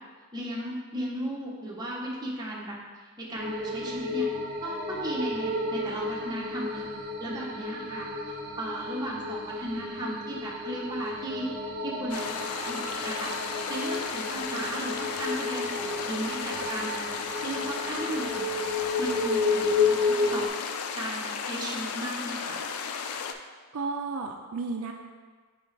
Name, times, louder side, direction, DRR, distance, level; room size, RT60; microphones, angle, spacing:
voice 1, 0.3-2.8 3.2-4.3 4.6-6.9 7.2-11.5 11.8-12.3 12.6-13.3 13.7-17.0 17.4-18.7 19.0-20.5 20.9-22.6, right 1 dB, 20° right, -4 dB, 0.9 m, -35 dB
sound 1, 3.3-20.5, left 3 dB, 45° right, 0.7 m, -32 dB
sound 2, 12.1-23.3, left 6 dB, 80° left, 0.4 m, -34 dB
voice 2, 23.7-24.9, right 4 dB, 70° right, 3 dB, 0.4 m, -32 dB
5.9 x 4.9 x 3.3 m, 1.4 s
head